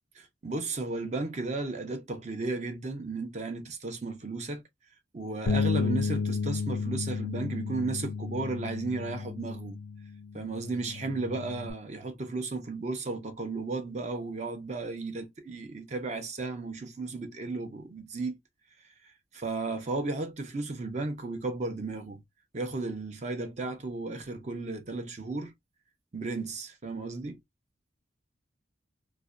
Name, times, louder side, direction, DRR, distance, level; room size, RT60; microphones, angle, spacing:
voice 1, 0.1-4.6 5.1-9.8 10.3-18.4 19.0-22.2 22.5-25.5 26.1-27.4, right 3 dB, 35° right, 0.5 m, -34 dB
Bass guitar, 5.5-11.7, left 5 dB, 90° left, 0.4 m, -32 dB
2.5 x 2.1 x 2.3 m
head